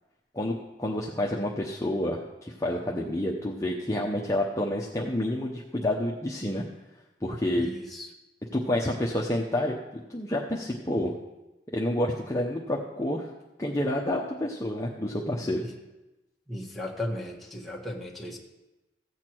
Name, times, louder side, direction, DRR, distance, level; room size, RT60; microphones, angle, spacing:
voice 1, 0.8-6.6 7.2-7.7 8.5-11.1 11.7-13.3 13.6-15.6, left 1 dB, 15° left, -3 dB, 0.9 m, -29 dB
voice 2, 7.5-8.1 15.4-15.7 16.5-18.4, left 1 dB, ahead, -3 dB, 1.5 m, -36 dB
15.5 x 8.2 x 4.6 m, 1.0 s
head